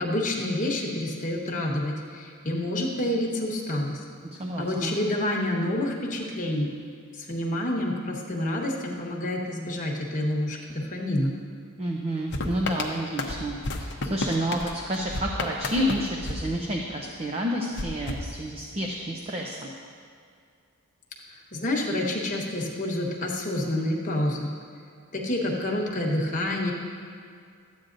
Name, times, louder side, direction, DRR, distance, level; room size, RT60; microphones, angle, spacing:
voice 1, 0.0-4.0 4.6-6.7 7.1-11.3 21.3-24.5 25.1-26.7, left 1 dB, 35° left, -3 dB, 1.2 m, -28 dB
voice 2, 4.4-4.9 11.8-19.7, equal, 25° right, -1 dB, 0.6 m, -30 dB
sound 1, 12.3-17.2 17.7-19.0, left 2 dB, 55° left, 0.8 m, -33 dB
13.0 x 8.9 x 2.6 m, 2.3 s
head